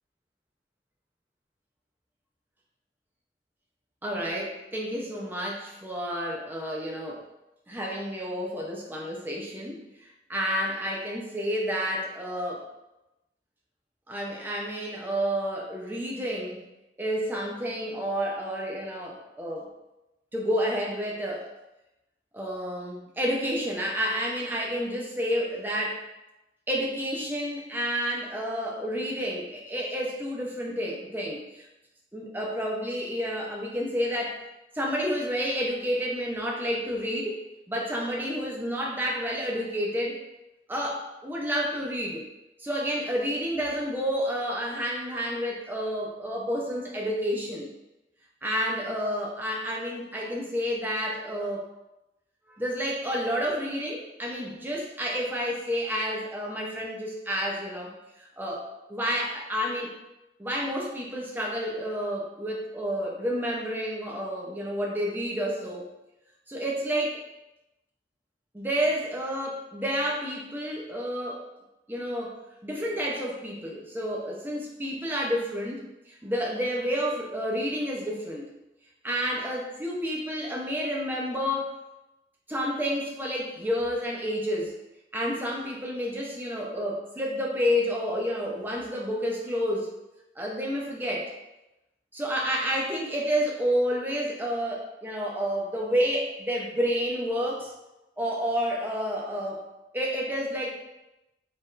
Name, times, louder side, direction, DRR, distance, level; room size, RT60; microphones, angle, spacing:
voice 1, 4.0-7.2 7.7-12.6 14.1-16.6 17.0-19.7 20.3-21.5 22.3-26.0 26.7-31.7 32.1-34.4 34.7-37.4 37.7-40.2 40.7-42.2 42.6-47.7 48.4-51.7 52.5-57.9 58.2-59.9 60.4-65.8 66.5-67.2 68.5-71.4 71.9-78.5 79.0-81.7 82.5-84.8 85.1-89.9 90.4-91.3 92.1-97.7 98.2-99.6 99.9-100.8, equal, 10° right, -2 dB, 0.6 m, -30 dB
4.2 x 3.5 x 2.5 m, 0.94 s
head